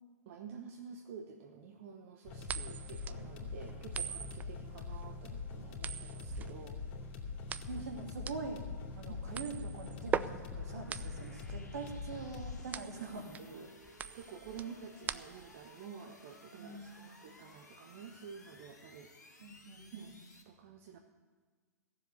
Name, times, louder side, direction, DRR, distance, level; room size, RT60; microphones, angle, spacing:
voice 1, 0.3-6.8 7.5-7.9 13.0-13.7 14.1-19.1 19.9-21.0, right 6 dB, 50° right, 3 dB, 1.1 m, -50 dB
sound 1, 2.2-12.6, left 4 dB, 45° left, 2.6 m, -43 dB
sound 2, 2.4-15.6, right 8 dB, 15° right, 0.4 m, -42 dB
sound 3, 6.9-20.4, left 2 dB, 90° left, 2.2 m, -59 dB
voice 2, 7.6-8.7 9.0-13.3 14.6-14.7 16.6-17.1 19.4-20.1, right 3 dB, 65° right, 2 dB, 2.4 m, -44 dB
16.0 x 7.4 x 8.0 m, 1.5 s
figure-of-eight pair, 105°, 9 cm